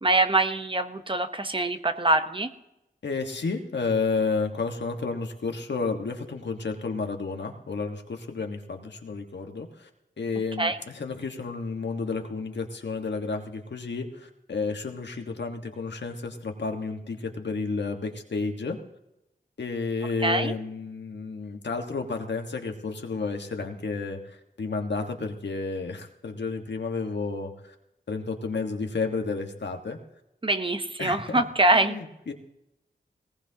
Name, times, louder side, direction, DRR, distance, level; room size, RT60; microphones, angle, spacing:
voice 1, 0.0-2.5 10.6-10.8 20.2-20.5 30.4-32.0, right 2 dB, 30° right, 8 dB, 1.0 m, -24 dB
voice 2, 3.0-9.9 10.2-18.8 19.6-27.7 28.1-30.0 31.0-31.4 31.7-32.3, left 4 dB, 85° left, 4 dB, 1.5 m, -31 dB
19.5 x 18.0 x 2.9 m, 0.87 s
wide cardioid pair, 80°, 18 cm